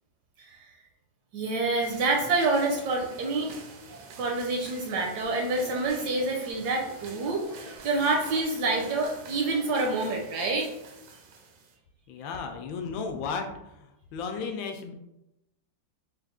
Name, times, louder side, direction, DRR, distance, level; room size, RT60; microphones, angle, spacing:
voice 1, 1.3-3.5 4.2-10.7, right 3 dB, 75° right, 0 dB, 1.0 m, -27 dB
sound 1, 1.8-11.7, right 4 dB, 90° right, 1.4 m, -47 dB
sound 2, 4.9-5.2 5.6-5.9 6.2-6.5 6.8-7.8 8.1-8.4 8.7-9.1 9.4-10.0, right 1 dB, 50° left, 0.8 m, -48 dB
voice 2, 12.1-13.5 13.8-14.9, left 5 dB, 80° left, 5 dB, 1.3 m, -34 dB
4.0 x 2.4 x 3.5 m, 0.89 s
omnidirectional pair, 2.1 m